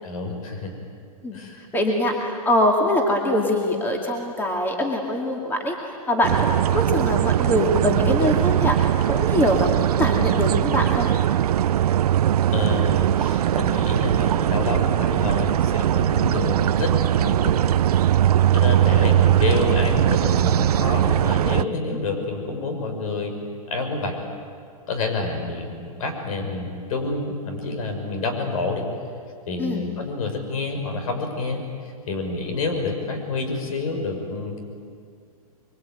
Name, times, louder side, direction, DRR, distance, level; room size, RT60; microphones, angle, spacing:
voice 1, 0.0-0.7 1.3-1.6 12.5-17.6 18.5-23.4 23.7-24.2 24.9-28.9 29.5-31.6 32.1-34.6, left 3 dB, 65° left, 5 dB, 5.9 m, -28 dB
voice 2, 1.7-5.7 6.1-11.1 29.6-29.8, left 1 dB, 10° left, 1 dB, 2.4 m, -23 dB
sound 1, 6.2-21.6, right 11 dB, 80° right, 0.6 m, -20 dB
24.5 x 23.5 x 9.2 m, 2.3 s
hypercardioid pair, 140°, 19 cm